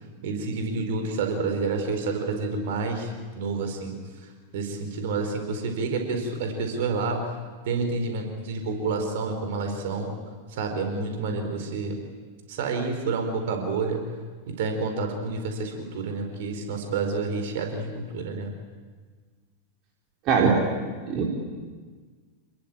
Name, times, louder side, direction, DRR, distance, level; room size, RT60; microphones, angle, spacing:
voice 1, 0.2-4.3 4.5-7.4 7.6-10.2 10.5-12.0 12.5-14.0 14.5-18.5, right 4 dB, 55° right, 5 dB, 4.9 m, -29 dB
voice 2, 20.3-20.6 21.1-21.3, right 6 dB, 40° right, 0 dB, 3.9 m, -20 dB
28.0 x 21.5 x 8.9 m, 1.5 s
figure-of-eight pair, 90°, 0 cm